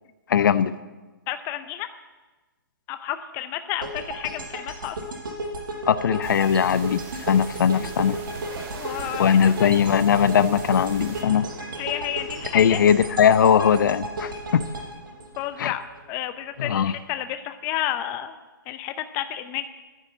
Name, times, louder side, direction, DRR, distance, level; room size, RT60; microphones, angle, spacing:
voice 1, 0.3-0.7 5.9-8.2 9.2-11.5 12.5-14.6 15.6-15.7 16.6-16.9, left 8 dB, 60° left, 14 dB, 0.7 m, -20 dB
voice 2, 1.3-1.9 2.9-5.0 8.7-9.5 11.8-12.8 15.4-15.8 16.1-18.3 18.7-19.6, left 12 dB, 20° left, 10 dB, 0.6 m, -31 dB
sound 1, 3.8-16.0, right 1 dB, 70° right, 5.0 m, -34 dB
sound 2, 6.2-11.2, right 5 dB, 20° right, 1.5 m, -43 dB
Boom, 7.6-16.9, right 3 dB, 85° right, 2.0 m, -44 dB
10.5 x 9.9 x 7.8 m, 1.2 s
hypercardioid pair, 150°, 12 cm